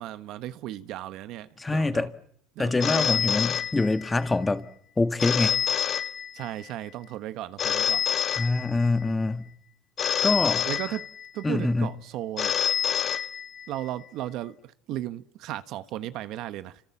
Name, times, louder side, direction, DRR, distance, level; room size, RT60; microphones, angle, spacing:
voice 1, 0.0-2.1 2.5-3.4 6.3-8.0 10.6-11.0 11.3-12.6 13.7-16.8, right 13 dB, 60° right, 1.3 m, -35 dB
voice 2, 1.6-2.1 2.6-4.6 5.0-5.6 8.3-9.5 10.2-10.7 11.4-11.9, left 3 dB, 15° left, 1.9 m, -25 dB
Telephone, 2.8-4.3 5.2-6.7 7.6-9.1 10.0-11.5 12.4-13.9, left 9 dB, 40° left, 1.4 m, -27 dB
29.5 x 27.0 x 7.3 m
cardioid pair, 125°, 0 cm